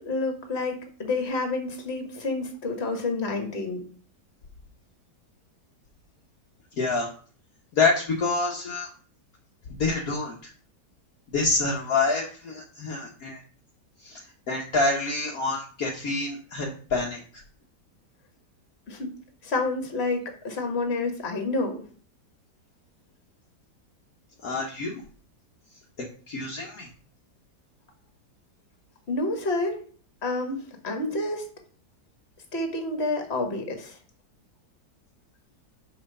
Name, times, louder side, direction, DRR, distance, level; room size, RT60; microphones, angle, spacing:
voice 1, 0.1-3.8 18.9-19.1 19.4-21.8 29.1-29.8 30.2-31.4 32.5-33.9, left 2 dB, 40° left, 4 dB, 1.8 m, -29 dB
voice 2, 6.8-7.1 7.7-8.9 9.8-10.4 11.3-13.4 14.0-17.2 24.4-25.0 26.3-26.9, left 3 dB, 60° left, -2 dB, 1.5 m, -27 dB
5.6 x 5.1 x 6.6 m, 0.43 s
omnidirectional pair, 1.8 m